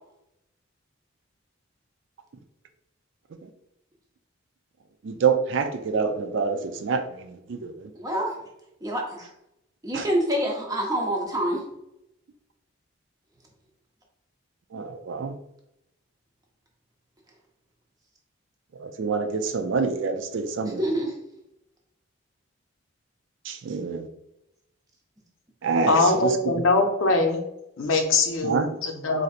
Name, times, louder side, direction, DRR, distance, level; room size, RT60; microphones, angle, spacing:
voice 1, 5.0-7.9 9.9-10.1 14.7-15.4 18.7-20.8 23.4-24.1 25.6-26.6 28.4-28.8, right 5 dB, 60° right, 6 dB, 0.4 m, -27 dB
voice 2, 7.9-8.3 8.8-9.3 9.8-11.6 20.8-21.1, right 1 dB, 15° right, -1 dB, 0.6 m, -26 dB
voice 3, 25.9-27.4 27.8-29.2, left 3 dB, 65° left, 4 dB, 0.5 m, -22 dB
4.2 x 2.6 x 2.4 m, 0.85 s
head